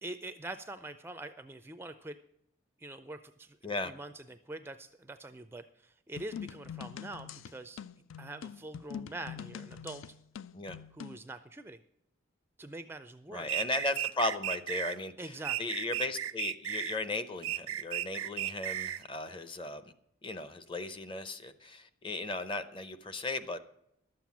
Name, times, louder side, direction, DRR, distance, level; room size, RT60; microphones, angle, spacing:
voice 1, 0.0-2.2 2.8-3.6 3.8-7.8 8.2-10.0 10.9-11.8 12.6-13.5 15.2-15.7, right 2 dB, 10° right, 10 dB, 0.4 m, -44 dB
sound 1, 6.2-11.2, left 8 dB, 75° left, 0.4 m, -44 dB
voice 2, 13.3-15.3 15.6-19.8 20.2-23.6, left 2 dB, 25° left, 11 dB, 0.7 m, -36 dB
sound 2, 13.5-15.0 15.4-17.0 17.4-19.0, right 12 dB, 80° right, 0.4 m, -35 dB
12.0 x 7.6 x 7.2 m, 0.78 s
head